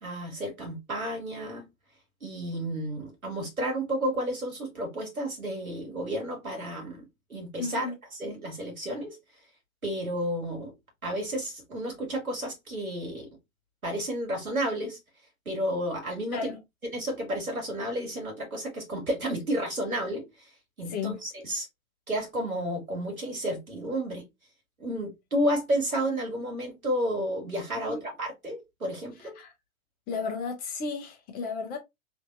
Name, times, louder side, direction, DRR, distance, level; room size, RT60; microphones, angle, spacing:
voice 1, 0.0-1.7 2.2-9.2 9.8-10.7 11.0-13.3 13.8-15.0 15.5-16.5 16.8-20.5 20.8-21.7 22.1-24.3 24.8-29.4, equal, 85° right, 1.9 m, -31 dB
voice 2, 7.6-7.9 16.3-16.6 20.9-21.2 27.9-28.0 29.4-29.5 30.1-31.8, left 5 dB, 20° left, 0.8 m, -33 dB
3.5 x 2.7 x 2.4 m
figure-of-eight pair, 100°, 41 cm